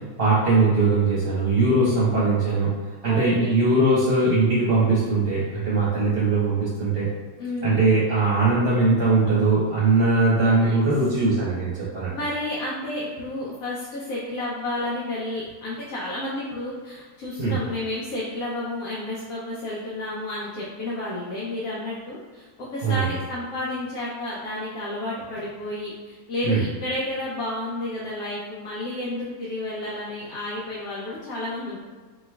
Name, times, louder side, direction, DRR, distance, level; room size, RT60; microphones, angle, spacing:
voice 1, 0.2-2.7 3.0-7.1 7.6-12.1 17.4-17.6 22.8-23.1 26.4-26.6, right 3 dB, 45° right, -9 dB, 1.1 m, -20 dB
voice 2, 3.0-3.5 7.4-7.8 10.5-10.8 12.1-31.8, left 1 dB, 75° left, -7 dB, 1.2 m, -31 dB
4.4 x 3.1 x 2.3 m, 1.4 s
omnidirectional pair, 1.6 m